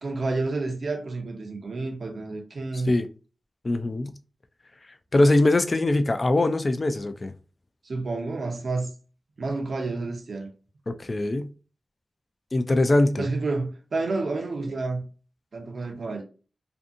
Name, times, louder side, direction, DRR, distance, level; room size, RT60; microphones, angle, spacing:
voice 1, 0.0-3.0 7.8-8.9 9.4-10.5 13.2-15.1 15.5-16.2, right 3 dB, 70° right, 0.5 m, -29 dB
voice 2, 2.7-3.1 3.6-4.1 5.1-7.3 10.9-11.5 12.5-13.2, left 2 dB, 40° left, 0.3 m, -22 dB
2.6 x 2.5 x 2.5 m
wide cardioid pair, 90°, 0 cm